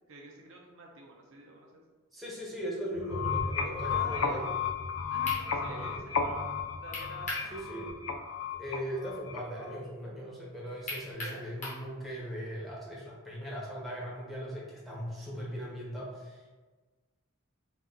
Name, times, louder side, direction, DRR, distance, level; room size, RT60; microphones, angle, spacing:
voice 1, 0.1-1.8 3.8-4.4 5.1-7.5 11.2-11.4, right 2 dB, 65° right, 0 dB, 0.6 m, -48 dB
voice 2, 2.1-4.6 5.6-6.0 7.5-7.9 8.6-16.5, equal, ahead, -6 dB, 0.8 m, -39 dB
sound 1, 3.0-9.8, left 5 dB, 65° left, 0.4 m, -33 dB
sound 2, 4.8-4.9 5.3-5.4 6.9-7.5 7.9-8.0 10.9-11.8, left 2 dB, 35° left, 1.1 m, -37 dB
4.1 x 2.4 x 3.7 m, 1.3 s
head